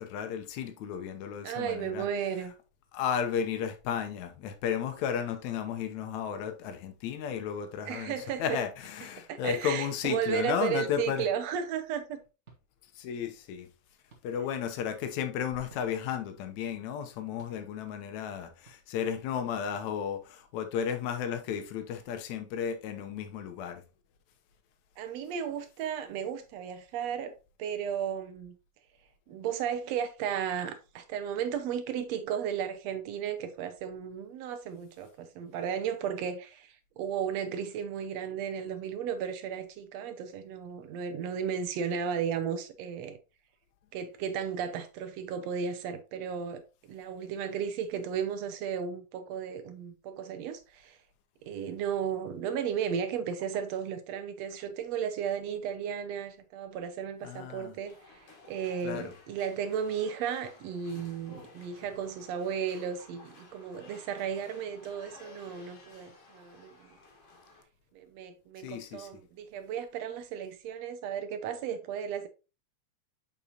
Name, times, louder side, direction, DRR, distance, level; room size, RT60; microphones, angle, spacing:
voice 1, 0.0-2.1 2.9-8.1 8.4-11.3 12.9-13.7 14.2-23.8 57.2-57.7 58.8-59.1 68.6-69.1, left 8 dB, 70° left, 2.1 m, -33 dB
voice 2, 1.4-2.5 7.9-8.6 9.3-12.2 25.0-27.3 27.6-28.6 29.3-43.2 43.9-51.0 51.4-58.0 58.5-66.9 67.9-72.3, right 8 dB, 75° right, 1.6 m, -34 dB
sound 1, 8.2-8.3 9.4-9.7 10.9-11.1 12.5-12.6 14.1-14.2 15.7-15.9 17.4-17.6 18.7-18.8 19.7-19.9, right 5 dB, 50° right, 0.8 m, -53 dB
sound 2, 57.8-67.6, left 2 dB, 50° left, 2.3 m, -54 dB
7.0 x 5.4 x 2.9 m
omnidirectional pair, 3.8 m